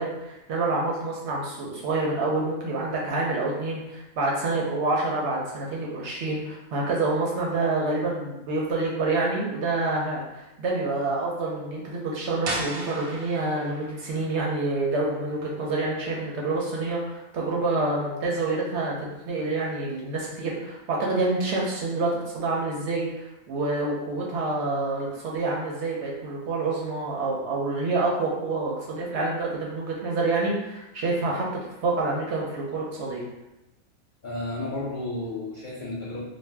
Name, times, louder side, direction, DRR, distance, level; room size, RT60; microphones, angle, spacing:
voice 1, 0.0-31.5 31.8-33.3, right 3 dB, 65° right, -3 dB, 0.7 m, -27 dB
sound 1, 12.4-18.1, right 2 dB, 90° right, 1.1 m, -39 dB
voice 2, 34.2-36.2, left 2 dB, 75° left, -6 dB, 0.4 m, -32 dB
2.5 x 2.1 x 3.2 m, 0.97 s
omnidirectional pair, 1.5 m